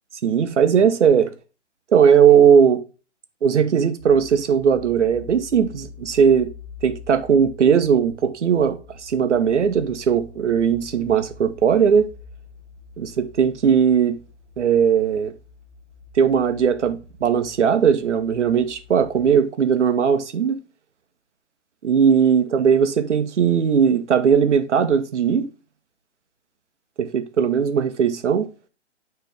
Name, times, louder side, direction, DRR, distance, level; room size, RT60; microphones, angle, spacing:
voice 1, 0.2-1.3 1.9-2.8 3.4-6.5 6.8-12.1 13.0-14.2 14.6-15.3 16.1-20.6 21.8-25.5 27.0-28.5, right 7 dB, 70° right, 1.0 m, -18 dB
sound 1, 4.0-19.3, left 5 dB, 30° right, 0.7 m, -46 dB
9.3 x 3.3 x 3.5 m
hypercardioid pair, 140°, 36 cm